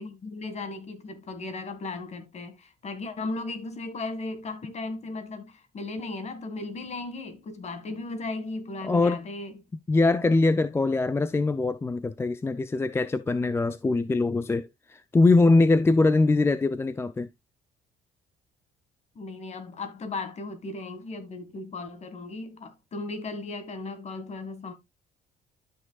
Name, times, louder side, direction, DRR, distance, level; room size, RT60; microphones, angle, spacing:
voice 1, 0.0-9.6 19.2-24.7, left 3 dB, 40° left, 1.8 m, -36 dB
voice 2, 8.8-9.2 9.9-17.3, left 3 dB, 15° left, 0.4 m, -22 dB
12.0 x 5.9 x 2.3 m
cardioid pair, 110°, 17 cm